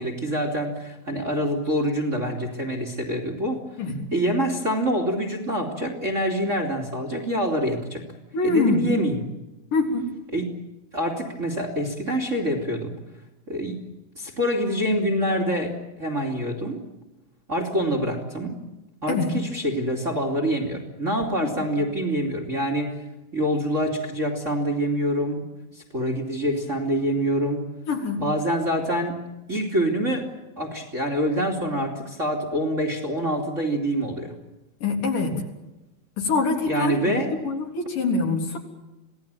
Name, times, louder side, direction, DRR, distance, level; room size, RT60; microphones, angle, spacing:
voice 1, 0.0-3.6 4.1-8.0 8.4-9.2 10.3-10.5 10.9-12.9 13.5-13.8 14.1-16.8 17.5-18.6 19.0-23.0 23.3-25.4 25.7-27.6 28.2-29.2 29.5-30.3 30.6-34.3 36.7-37.3, equal, 20° right, 3 dB, 2.8 m, -26 dB
voice 2, 8.3-8.8 9.7-10.1 19.1-19.3 21.4-21.5 27.9-28.2 34.8-35.3 36.2-37.0 37.4-38.6, left 3 dB, 65° left, 2 dB, 5.2 m, -24 dB
28.0 x 18.0 x 9.1 m, 1.0 s
omnidirectional pair, 4.1 m